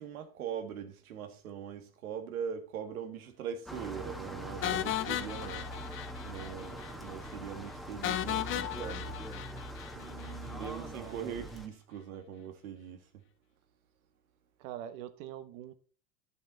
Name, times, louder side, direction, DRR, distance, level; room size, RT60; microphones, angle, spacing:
voice 1, 0.0-5.7 6.2-9.4 10.5-13.2, right 8 dB, 90° right, 1.8 m, -41 dB
sound 1, 3.7-11.7, equal, ahead, 1.5 m, -42 dB
sound 2, 4.6-6.5 6.8-6.9 7.3-7.4 8.0-10.3, left 12 dB, 30° left, 0.5 m, -35 dB
voice 2, 9.9-11.3 14.6-15.7, right 11 dB, 60° right, 1.3 m, -45 dB
10.5 x 7.2 x 4.1 m
supercardioid pair, 105°, 41 cm